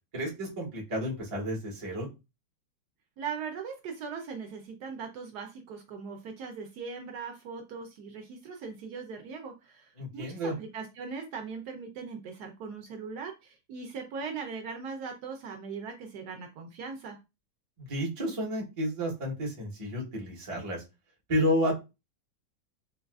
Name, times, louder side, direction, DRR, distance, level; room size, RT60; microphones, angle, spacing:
voice 1, 0.1-2.1 10.0-10.5 17.8-20.8 21.3-21.7, equal, 30° right, -2 dB, 0.6 m, -31 dB
voice 2, 3.2-17.2, right 5 dB, 70° right, 3 dB, 1.0 m, -40 dB
3.9 x 2.3 x 2.3 m, 0.26 s
omnidirectional pair, 2.0 m